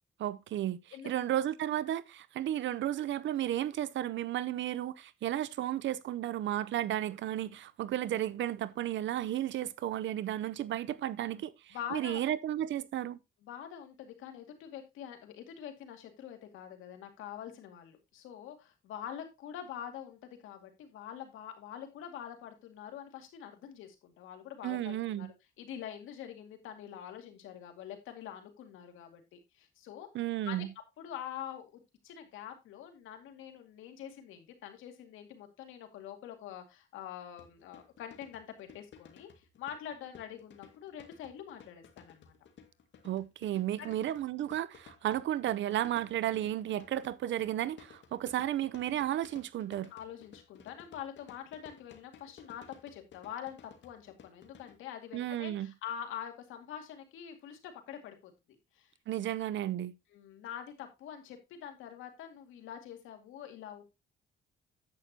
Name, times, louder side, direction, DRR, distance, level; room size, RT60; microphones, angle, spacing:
voice 1, 0.2-0.8 1.0-13.2 24.6-25.3 30.1-30.7 43.0-49.9 55.1-55.7 59.1-59.9, right 12 dB, 70° right, 0.7 m, -33 dB
voice 2, 11.7-12.3 13.4-25.3 25.6-30.1 30.5-30.7 31.0-42.3 43.8-43.9 49.9-58.3 58.7-58.9 60.1-63.8, left 9 dB, 90° left, 2.3 m, -45 dB
sound 1, 37.4-54.7, left 7 dB, 65° left, 2.1 m, -57 dB
10.5 x 8.3 x 2.8 m
cardioid pair, 90°, 20 cm